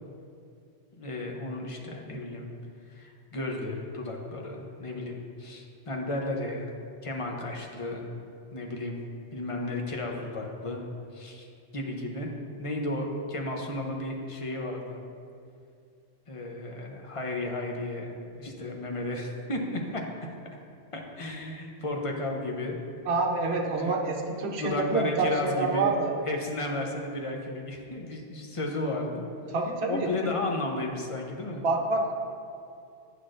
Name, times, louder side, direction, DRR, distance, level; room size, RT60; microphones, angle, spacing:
voice 1, 1.0-2.5 2.9-6.7 7.0-8.0 8.5-8.9 9.3-10.8 11.1-11.5 11.7-12.3 12.6-15.0 16.3-20.0 20.9-22.8 23.7-23.9 24.2-25.9 26.2-29.2 29.9-31.6, left 2 dB, 35° left, 1 dB, 0.7 m, -33 dB
voice 2, 23.1-26.1 29.5-30.1 31.6-32.1, right 3 dB, 65° right, 1 dB, 1.0 m, -27 dB
9.7 x 6.2 x 2.5 m, 2.4 s
omnidirectional pair, 1.2 m